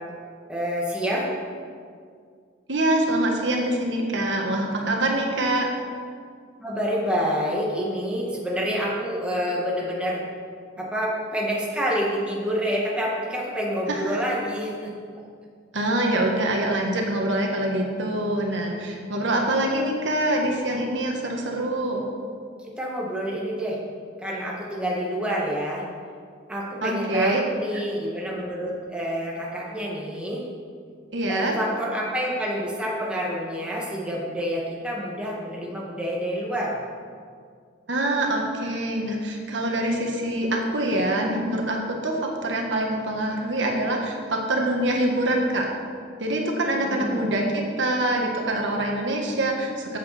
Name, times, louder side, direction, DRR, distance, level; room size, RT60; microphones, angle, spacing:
voice 1, 0.5-1.3 6.6-10.2 10.8-14.9 19.1-19.2 22.7-23.8 24.2-25.9 26.5-30.4 31.3-36.8 46.8-47.3, equal, 5° right, -4 dB, 1.9 m, -28 dB
voice 2, 2.7-5.7 13.9-14.2 15.7-22.0 26.8-27.4 31.1-31.5 37.9-45.7 46.2-50.0, right 1 dB, 70° right, 0 dB, 1.5 m, -25 dB
14.0 x 8.0 x 4.3 m, 2.1 s
head